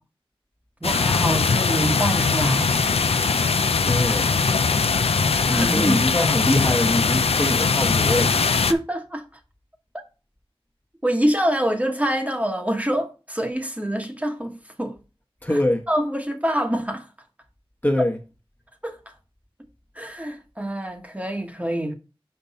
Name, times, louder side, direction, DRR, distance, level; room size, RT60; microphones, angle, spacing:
sound 1, 0.8-8.7, left 5 dB, 85° left, 0.4 m, -21 dB
voice 1, 0.8-2.7 5.5-6.0 6.2-6.3 8.7-9.2 11.0-14.9 15.5-15.6 15.9-17.0 18.8-19.0 20.0-21.9, right 1 dB, 15° right, 1.1 m, -25 dB
voice 2, 3.8-4.3 5.5-8.6 15.4-15.9 17.8-18.2, left 1 dB, 20° left, 1.0 m, -23 dB
5.7 x 5.2 x 4.1 m
wide cardioid pair, 55°, 10 cm